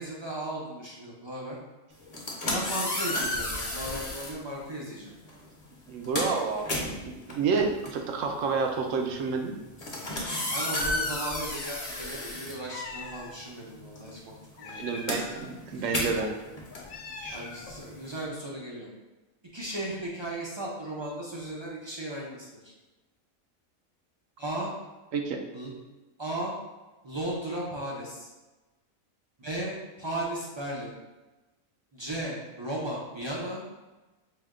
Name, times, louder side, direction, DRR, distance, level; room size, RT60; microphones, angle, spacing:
voice 1, 0.0-1.6 2.5-5.1 10.5-14.9 15.8-15.9 17.3-18.9 19.5-22.7 24.4-24.7 25.5-25.7 26.2-26.5 27.0-28.3 29.4-30.9 31.9-33.6, right 1 dB, 40° right, -4 dB, 0.3 m, -36 dB
sound 1, 2.0-4.4 5.3-5.5 5.8-13.3 13.6-18.2, left 1 dB, 35° left, 0.7 m, -33 dB
voice 2, 5.9-6.8 7.1-9.5 14.7-16.3 17.2-17.4 25.1-25.4, right 5 dB, 70° right, 4 dB, 0.9 m, -29 dB
Meow, 12.7-13.3 14.6-15.5 16.7-17.8, left 4 dB, 70° left, 1.0 m, -42 dB
4.8 x 2.2 x 3.6 m, 1.1 s
omnidirectional pair, 1.4 m